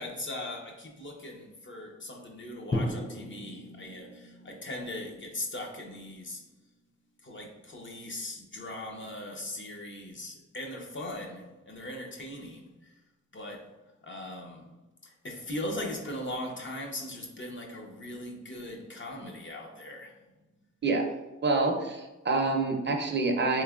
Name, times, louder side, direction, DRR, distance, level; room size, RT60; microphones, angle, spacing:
voice 1, 0.0-6.4 7.2-12.7 13.3-13.6 14.0-14.6 15.2-20.1, left 1 dB, 40° left, 1 dB, 0.7 m, -39 dB
Drum, 2.7-6.7, left 1 dB, 15° left, 0.3 m, -37 dB
voice 2, 21.4-23.6, right 3 dB, 35° right, 2 dB, 0.6 m, -27 dB
3.4 x 3.2 x 2.4 m, 1.1 s
cardioid pair, 65°, 31 cm